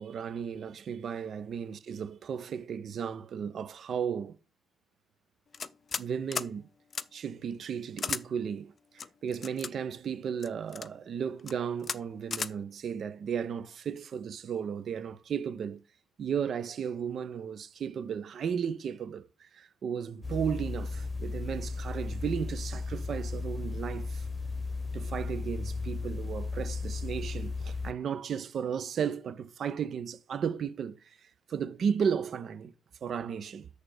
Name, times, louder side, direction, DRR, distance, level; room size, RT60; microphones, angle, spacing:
voice 1, 0.0-4.4 6.0-6.7 7.1-8.7 9.2-15.8 16.2-24.3 24.9-32.7 33.0-33.7, right 7 dB, 50° right, 0.7 m, -34 dB
sound 1, 5.5-6.1 6.3-6.5 6.9-7.1 8.0-8.2 9.0-9.7 10.4-10.9 11.4-11.5 11.8-12.0 12.3-12.5, left 5 dB, 40° left, 0.5 m, -34 dB
sound 2, 20.2-27.9, left 3 dB, 15° left, 1.0 m, -35 dB
6.7 x 4.9 x 6.5 m
hypercardioid pair, 50°, 0 cm